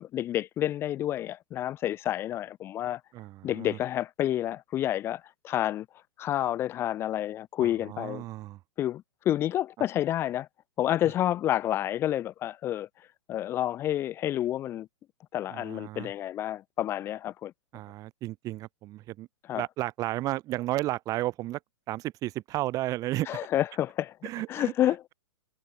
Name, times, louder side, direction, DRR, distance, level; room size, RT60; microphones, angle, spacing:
voice 1, 0.0-3.0 3.4-5.9 6.2-8.2 8.8-10.5 10.8-12.9 13.3-14.9 15.3-17.5 19.5-19.6 23.3-24.2 24.5-25.1, left 12 dB, 15° left, 0.6 m, -29 dB
voice 2, 3.1-3.8 7.6-8.6 15.5-16.1 17.7-19.3 19.5-21.6 21.9-23.4 24.2-25.1, right 16 dB, 20° right, 2.4 m, -33 dB
hypercardioid pair, 160°, 15 cm